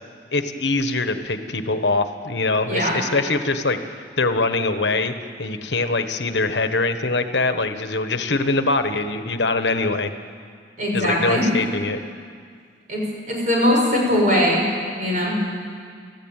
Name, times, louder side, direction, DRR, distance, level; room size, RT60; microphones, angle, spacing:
voice 1, 0.3-5.1 5.4-10.1 10.9-12.0, left 3 dB, 70° left, 8 dB, 1.3 m, -23 dB
voice 2, 10.8-11.5 12.9-13.0 13.3-14.6 15.0-15.3, equal, 45° right, -2 dB, 7.1 m, -20 dB
29.0 x 14.5 x 9.0 m, 2.1 s
head